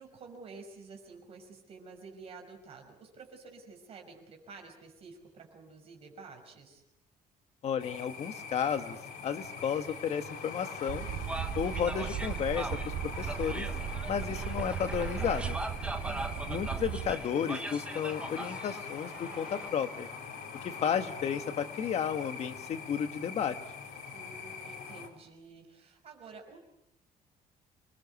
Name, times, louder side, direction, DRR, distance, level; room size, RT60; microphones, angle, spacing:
voice 1, 0.0-6.8 16.0-16.6 24.1-26.6, right 4 dB, 40° right, 3 dB, 5.6 m, -50 dB
voice 2, 7.6-9.0 9.2-11.1 11.5-13.7 14.1-15.6 16.5-20.1 20.6-23.5, left 8 dB, 40° left, 8 dB, 1.5 m, -33 dB
sound 1, 7.8-25.1, left 5 dB, 75° left, 4.3 m, -43 dB
sound 2, 10.9-17.1, right 10 dB, 85° right, 2.8 m, -37 dB
sound 3, 11.3-19.7, right 2 dB, 5° right, 1.0 m, -41 dB
26.5 x 21.0 x 8.3 m, 0.85 s
cardioid pair, 180°, 16 cm